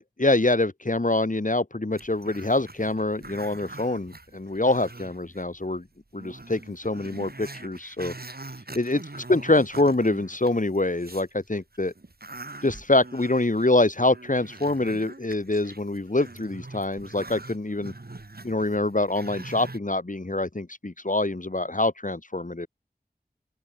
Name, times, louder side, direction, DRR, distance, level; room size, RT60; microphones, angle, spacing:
voice 1, 0.0-5.9 6.1-8.1 8.7-11.9 12.6-17.9 18.4-22.7, left 2 dB, 50° left, 2.6 m, -25 dB
Growling, 1.9-5.4 5.8-5.9 6.2-11.3 11.7-19.8, right 2 dB, 70° right, 4.0 m, -43 dB
open air
wide cardioid pair, 40°, 17 cm